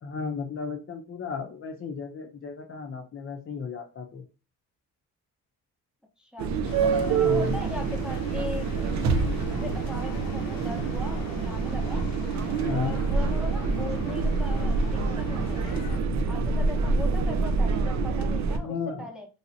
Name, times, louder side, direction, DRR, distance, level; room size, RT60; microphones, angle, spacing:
voice 1, 0.0-4.2 7.2-7.5 12.6-13.0 18.5-19.1, left 5 dB, 40° left, 4 dB, 0.6 m, -33 dB
voice 2, 6.2-8.9 9.4-12.0 12.4-15.8 16.3-19.3, left 1 dB, ahead, 1 dB, 0.8 m, -39 dB
sound 1, 6.4-18.6, right 4 dB, 55° right, 0.6 m, -26 dB
sound 2, 6.7-16.0, left 6 dB, 85° left, 0.5 m, -44 dB
3.2 x 2.7 x 2.7 m, 0.32 s
cardioid pair, 110°, 33 cm